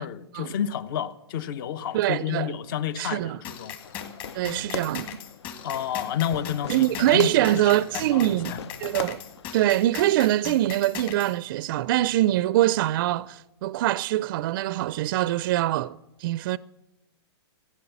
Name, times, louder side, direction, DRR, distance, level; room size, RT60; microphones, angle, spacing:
voice 1, 0.0-3.8 5.6-8.6, left 9 dB, 50° left, 0.9 m, -30 dB
voice 2, 1.9-2.5 3.0-3.4 4.3-5.1 6.7-9.2 9.5-16.6, right 15 dB, 50° right, 0.4 m, -24 dB
sound 1, 3.4-11.3, left 8 dB, 35° left, 2.2 m, -39 dB
Fireworks, 3.8-9.8, left 7 dB, 75° left, 0.7 m, -40 dB
15.0 x 9.2 x 7.1 m
hypercardioid pair, 130°, 14 cm